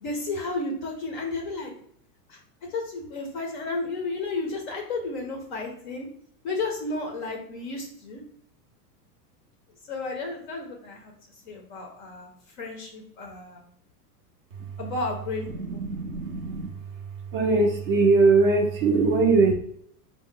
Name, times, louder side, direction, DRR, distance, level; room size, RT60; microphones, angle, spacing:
voice 1, 0.0-1.7 2.3-2.4 2.7-6.1 6.4-8.2 9.9-11.1 11.4-12.3 12.6-13.6 14.8-15.8, left 3 dB, 35° left, 2 dB, 0.4 m, -32 dB
voice 2, 15.6-16.7 17.3-19.5, right 3 dB, 35° right, 3 dB, 0.4 m, -21 dB
4.5 x 2.0 x 3.6 m, 0.67 s
supercardioid pair, 150°, 49 cm